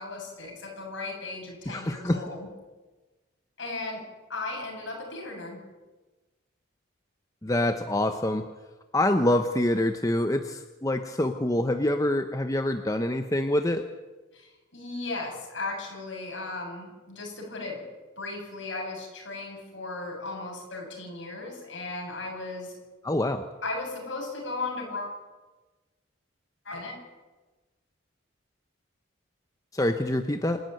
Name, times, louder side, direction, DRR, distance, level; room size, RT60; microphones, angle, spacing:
voice 1, 0.0-2.5 3.6-4.0 4.3-5.6 14.3-17.8 18.2-22.8 23.6-25.2 26.6-27.0, left 3 dB, 65° left, 0 dB, 8.0 m, -36 dB
voice 2, 1.7-2.2 7.4-8.4 8.9-13.8 23.0-23.4 29.7-30.6, left 1 dB, 15° left, 7 dB, 0.8 m, -26 dB
27.0 x 12.0 x 9.3 m, 1.2 s
head